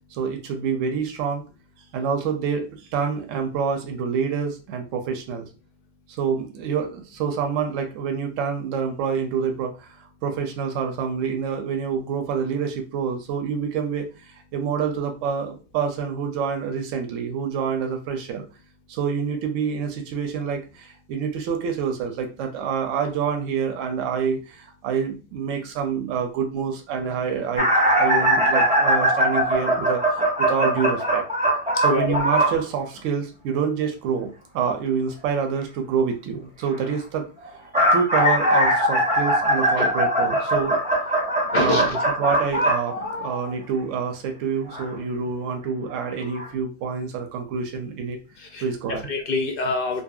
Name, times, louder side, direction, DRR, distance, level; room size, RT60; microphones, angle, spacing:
voice 1, 0.1-1.4 1.9-5.5 6.1-18.4 18.9-27.7 28.0-31.3 31.8-37.5 37.9-40.8 41.4-48.2 48.6-49.1, right 6 dB, 75° right, 4 dB, 0.9 m, -27 dB
sound 1, 27.6-32.6 37.4-43.6 44.7-44.8 45.9-46.0 46.4-46.5, right 1 dB, 10° right, 0.5 m, -21 dB
voice 2, 31.7-32.1 39.8-39.9 41.5-42.0 48.5-48.6 48.9-50.0, left 3 dB, 60° left, 4 dB, 0.6 m, -25 dB
2.7 x 2.6 x 2.3 m, 0.32 s
omnidirectional pair, 1.3 m